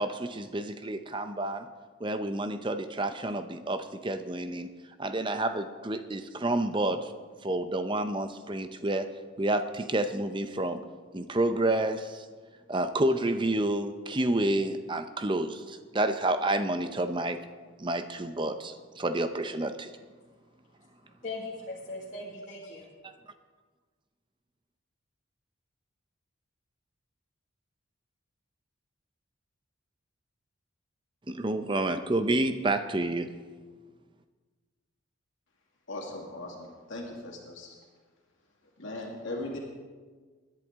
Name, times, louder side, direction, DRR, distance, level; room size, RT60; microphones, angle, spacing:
voice 1, 0.0-1.7 2.0-4.7 5.0-7.1 7.4-9.1 9.4-10.8 11.1-12.2 12.7-17.4 17.8-19.9 31.3-33.3, right 1 dB, 25° right, 9 dB, 0.6 m, -29 dB
voice 2, 20.8-22.9, left 2 dB, 35° left, -6 dB, 1.7 m, -40 dB
voice 3, 35.9-37.8 38.8-39.6, left 2 dB, 65° left, -2 dB, 2.4 m, -39 dB
20.0 x 11.0 x 3.7 m, 1.4 s
head